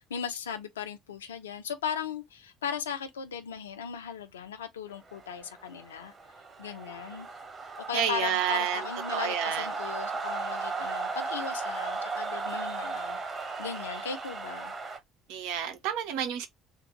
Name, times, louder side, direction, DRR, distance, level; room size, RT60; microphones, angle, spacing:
voice 1, 0.0-6.1 6.6-7.3 7.8-14.7, left 7 dB, 75° left, 0.5 m, -37 dB
sound 1, 5.1-15.0, right 4 dB, 30° right, 1.3 m, -36 dB
voice 2, 7.9-8.8 9.1-9.7 15.3-16.5, right 10 dB, 60° right, 0.5 m, -29 dB
3.6 x 2.4 x 2.9 m
figure-of-eight pair, 55°, 0 cm